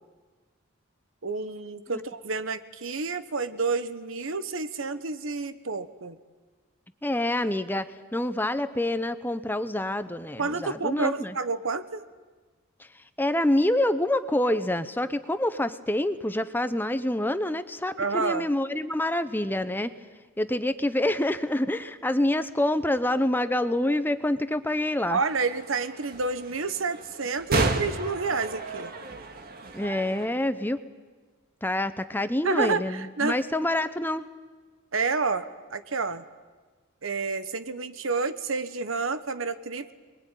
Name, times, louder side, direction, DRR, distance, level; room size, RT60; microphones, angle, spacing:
voice 1, 1.2-6.2 10.4-12.0 18.0-18.5 25.1-28.9 32.4-33.4 34.9-36.2 37.0-39.9, right 4 dB, 75° right, 12 dB, 1.2 m, -29 dB
voice 2, 7.0-7.9 8.1-11.3 13.2-19.9 20.4-25.2 29.7-30.8 31.6-34.2, left 1 dB, 10° left, 11 dB, 0.8 m, -26 dB
sound 1, 25.2-30.3, right 2 dB, 45° right, 1.9 m, -32 dB
26.0 x 21.5 x 9.2 m, 1.4 s
head